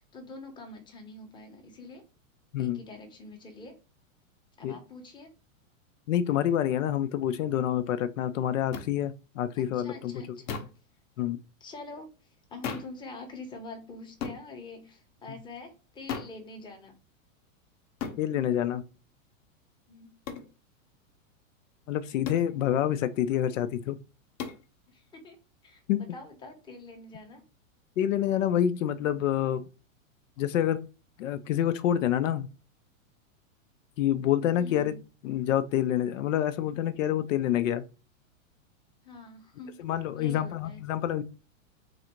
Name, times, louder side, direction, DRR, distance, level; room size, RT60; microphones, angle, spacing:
voice 1, 0.0-2.0 2.6-3.8 4.6-5.3 9.6-10.6 11.6-16.9 19.9-20.2 24.9-27.4 34.6-35.0 39.0-39.8 40.1-40.8, left 3 dB, 10° left, 4 dB, 0.9 m, -45 dB
voice 2, 6.1-10.1 11.2-11.4 18.2-18.8 21.9-24.0 25.9-26.0 28.0-29.6 30.4-30.8 31.2-32.5 34.0-34.9 35.2-37.8 39.8-41.2, left 11 dB, 65° left, 12 dB, 0.6 m, -27 dB
sound 1, 8.7-8.9 10.5-10.8 12.6-13.0 14.2-14.4 16.1-16.4 18.0-18.2 20.3-20.5 22.2-22.5 24.4-24.6, left 6 dB, 35° left, 0.8 m, -35 dB
4.1 x 2.6 x 4.3 m, 0.33 s
hypercardioid pair, 140°, 41 cm